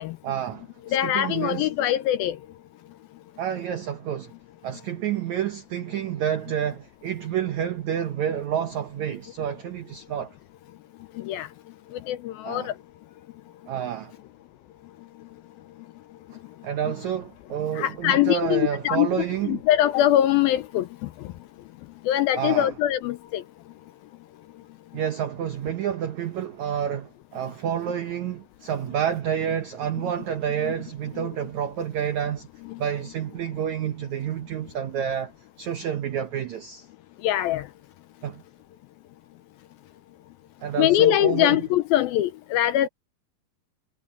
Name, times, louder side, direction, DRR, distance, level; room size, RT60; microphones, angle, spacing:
voice 1, 0.2-1.7 3.4-4.3 4.6-10.3 12.4-12.7 13.7-14.1 16.6-19.6 22.3-22.7 24.9-32.5 32.8-35.3 35.6-36.8 38.2-38.4 40.6-41.6, right 9 dB, 90° right, 1.6 m, -29 dB
voice 2, 0.9-2.4 11.2-11.5 11.9-12.7 17.7-19.1 19.5-21.3 22.0-23.4 30.6-30.7 31.2-31.3 32.7-32.8 37.2-37.7 40.8-42.9, left 13 dB, 80° left, 2.2 m, -23 dB
omnidirectional pair, 4.9 m